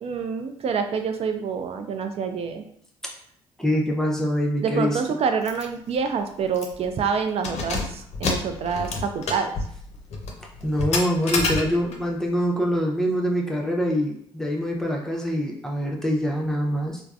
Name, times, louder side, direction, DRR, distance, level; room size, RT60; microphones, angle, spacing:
voice 1, 0.0-2.6 4.6-9.5, right 6 dB, 50° right, 6 dB, 0.4 m, -27 dB
voice 2, 3.6-5.0 10.6-17.0, equal, 5° left, -1 dB, 0.6 m, -24 dB
Keys jangling, 5.4-5.6 6.0-6.1 6.5-6.9 7.3-12.1, left 3 dB, 55° left, 0.6 m, -29 dB
3.2 x 2.0 x 2.4 m, 0.65 s
hypercardioid pair, 50°, 14 cm